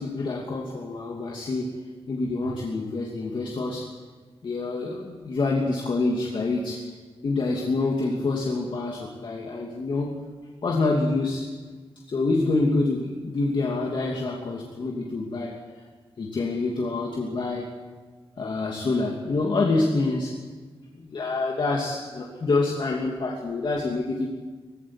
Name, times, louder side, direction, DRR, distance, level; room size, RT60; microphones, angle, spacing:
voice 1, 0.0-1.7 2.1-3.9 4.4-6.8 7.2-10.2 10.6-11.5 12.1-15.5 16.2-17.7 18.4-20.4 20.9-24.3, left 3 dB, 55° left, -2 dB, 2.7 m, -26 dB
20.0 x 16.0 x 9.7 m, 1.4 s
wide cardioid pair, 165°, 10 cm